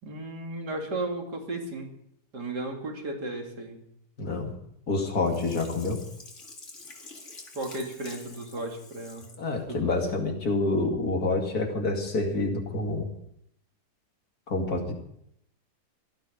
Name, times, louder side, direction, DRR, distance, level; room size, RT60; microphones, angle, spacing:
voice 1, 0.0-1.9 2.3-3.8 7.5-9.3 9.7-9.9, right 2 dB, 90° right, 1 dB, 3.3 m, -34 dB
voice 2, 4.2-4.5 4.9-6.0 9.4-13.1 14.5-14.9, left 3 dB, 65° left, 3 dB, 2.8 m, -27 dB
Sink (filling or washing), 5.2-9.4 9.9-10.0, left 3 dB, 45° left, 2.4 m, -47 dB
17.0 x 12.5 x 5.2 m, 0.74 s
omnidirectional pair, 1.7 m